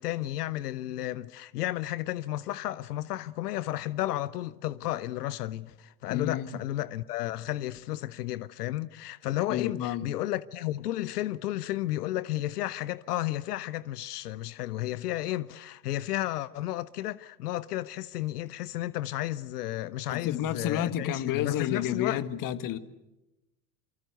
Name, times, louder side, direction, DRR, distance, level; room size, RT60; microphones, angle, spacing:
voice 1, 0.0-22.2, left 15 dB, 65° left, 0.9 m, -33 dB
voice 2, 6.1-6.5 9.5-10.1 20.1-22.8, left 10 dB, 40° left, 1.7 m, -30 dB
28.0 x 24.0 x 8.0 m
figure-of-eight pair, 80°, 50 cm